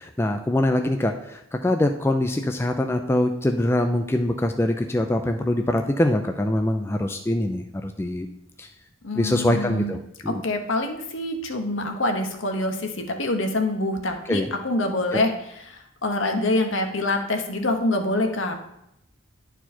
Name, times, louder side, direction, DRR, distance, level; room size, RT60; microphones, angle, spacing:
voice 1, 0.0-8.3 8.6-8.7 9.1-10.4 14.3-14.5 15.1-15.2, left 1 dB, 10° left, 5 dB, 0.3 m, -23 dB
voice 2, 9.0-9.9 10.3-15.3 15.7-18.5, left 2 dB, 70° left, 4 dB, 1.1 m, -25 dB
10.5 x 4.6 x 4.3 m, 0.80 s
head